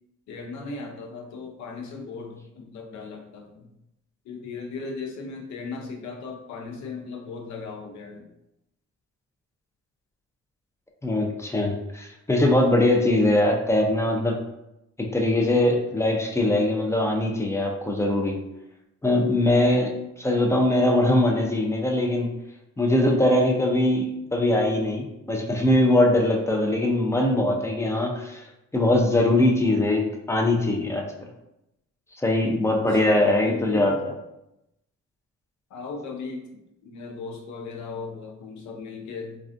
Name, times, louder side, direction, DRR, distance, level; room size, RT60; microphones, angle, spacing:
voice 1, 0.3-3.7 4.2-8.3 32.9-34.1 35.7-36.4 36.8-39.4, left 3 dB, 70° left, 2 dB, 0.6 m, -37 dB
voice 2, 11.0-14.4 15.0-18.4 19.0-22.3 22.8-28.4 28.7-31.0 32.2-33.9, left 1 dB, 10° left, 1 dB, 0.4 m, -22 dB
2.3 x 2.3 x 2.4 m, 0.86 s
cardioid pair, 90°, 30 cm